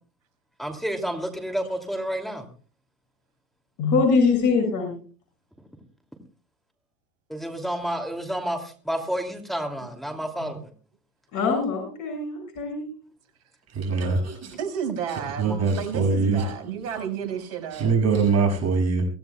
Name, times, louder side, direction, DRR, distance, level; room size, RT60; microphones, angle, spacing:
voice 1, 0.6-2.5 7.3-10.7, right 1 dB, ahead, 2.7 m, -30 dB
voice 2, 3.8-4.9 11.3-12.9, left 4 dB, 45° left, 6.6 m, -23 dB
voice 3, 13.7-14.5 15.1-16.5 17.7-19.0, right 4 dB, 35° right, 6.9 m, -23 dB
voice 4, 14.5-18.0, right 8 dB, 65° right, 5.8 m, -32 dB
23.5 x 16.5 x 2.3 m
hypercardioid pair, 100°, 42 cm